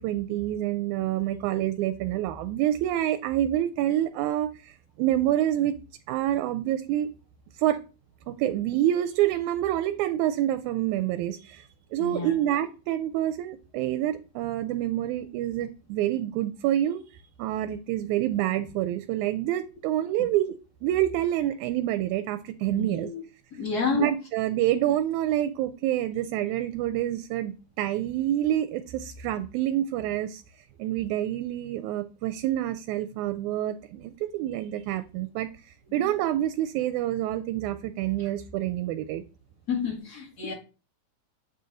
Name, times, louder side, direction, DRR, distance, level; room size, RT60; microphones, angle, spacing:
voice 1, 0.0-5.7 6.1-7.1 7.6-7.8 8.3-17.0 17.4-20.6 20.8-23.1 23.9-30.4 30.8-39.2, right 12 dB, 90° right, 2.0 m, -27 dB
voice 2, 12.0-12.3 22.7-23.2 23.5-24.1 36.0-36.1 39.7-40.5, left 4 dB, 35° left, 2.1 m, -29 dB
8.1 x 4.1 x 3.8 m
omnidirectional pair, 3.3 m